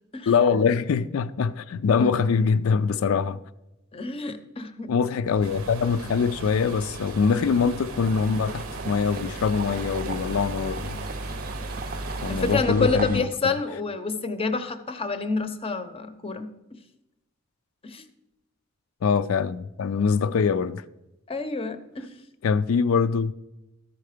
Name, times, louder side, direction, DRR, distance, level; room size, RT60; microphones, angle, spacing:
voice 1, 0.3-3.4 4.9-11.0 12.2-13.3 19.0-20.8 22.4-23.3, left 5 dB, 75° left, 0.4 m, -23 dB
voice 2, 3.9-4.9 12.3-16.8 17.8-18.0 21.3-22.1, left 4 dB, 25° left, 0.6 m, -28 dB
sound 1, 5.3-13.2, right 2 dB, 45° right, 0.5 m, -35 dB
sound 2, 5.4-12.6, right 4 dB, 80° right, 0.8 m, -41 dB
13.5 x 4.6 x 5.0 m
head